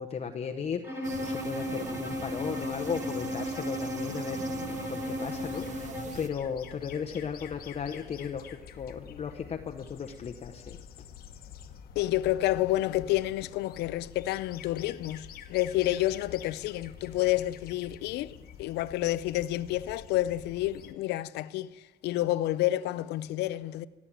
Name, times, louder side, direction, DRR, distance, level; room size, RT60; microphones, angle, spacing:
voice 1, 0.0-4.4 4.9-10.8, left 7 dB, 40° left, 0.9 m, -36 dB
Bowed string instrument, 0.8-6.3, left 1 dB, 15° right, 2.6 m, -35 dB
sound 1, 1.0-6.3, right 4 dB, 45° right, 1.4 m, -42 dB
sound 2, 5.3-20.9, left 8 dB, 65° left, 1.2 m, -48 dB
voice 2, 12.0-23.9, left 15 dB, 80° left, 0.5 m, -29 dB
17.5 x 8.6 x 8.7 m
cardioid pair, 110°, 17 cm